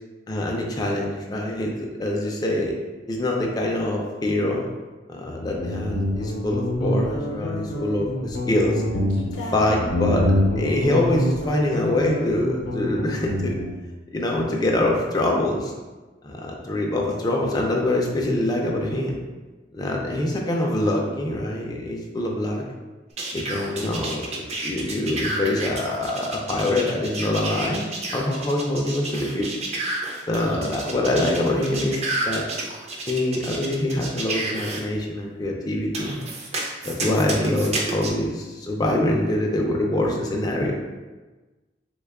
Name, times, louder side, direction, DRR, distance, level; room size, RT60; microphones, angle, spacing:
voice 1, 0.3-2.8 3.1-4.7 5.1-8.8 9.3-13.6 14.1-15.7 16.2-19.2 19.7-22.6 23.3-27.8 28.1-29.8 30.3-32.0 32.3-32.4 33.1-36.2 36.8-40.7, left 1 dB, 20° left, -1 dB, 0.4 m, -24 dB
Guitar, 5.3-13.8, left 1 dB, 70° left, 0.6 m, -26 dB
sound 1, 23.2-34.8 35.9-38.1, right 2 dB, 35° right, 0.5 m, -30 dB
3.4 x 2.2 x 3.4 m, 1.2 s
head